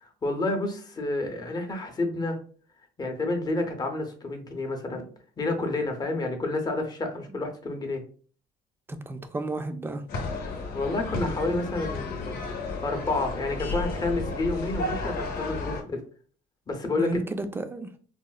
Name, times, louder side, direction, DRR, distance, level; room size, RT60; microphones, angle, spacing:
voice 1, 0.0-2.4 3.0-5.0 5.4-8.0 10.7-12.4 12.8-16.0 16.7-17.2, left 2 dB, 25° left, 3 dB, 0.7 m, -29 dB
voice 2, 8.9-10.0 17.0-17.9, right 2 dB, 15° right, 8 dB, 0.4 m, -32 dB
sound 1, 10.1-15.8, left 3 dB, 65° left, 0.8 m, -33 dB
4.1 x 2.0 x 2.3 m, 0.43 s
cardioid pair, 110°, 17 cm